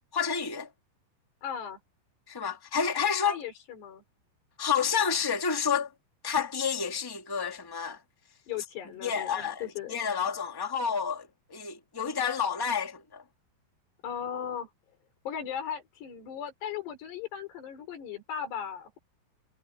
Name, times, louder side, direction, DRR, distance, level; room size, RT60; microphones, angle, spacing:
voice 1, 0.1-0.7 2.3-3.4 4.6-5.9 6.2-8.0 9.0-13.2, left 7 dB, 10° left, 1.3 m, -29 dB
voice 2, 1.4-1.8 3.2-4.0 8.5-10.0 14.0-14.7 15.2-19.0, left 8 dB, 70° left, 6.7 m, -37 dB
omnidirectional pair, 5.0 m